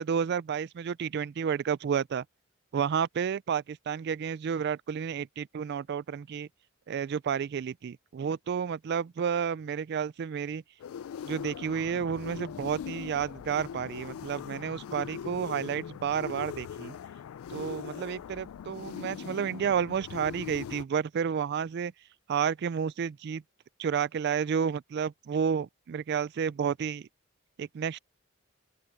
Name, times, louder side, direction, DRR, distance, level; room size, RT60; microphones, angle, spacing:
voice 1, 0.0-2.2 2.7-6.5 6.9-10.6 11.3-17.0 17.5-21.9 22.3-23.4 23.8-27.1 27.6-28.0, right 7 dB, 50° right, 0.3 m, -31 dB
sound 1, 10.8-20.8, left 8 dB, 85° left, 0.3 m, -41 dB
open air
head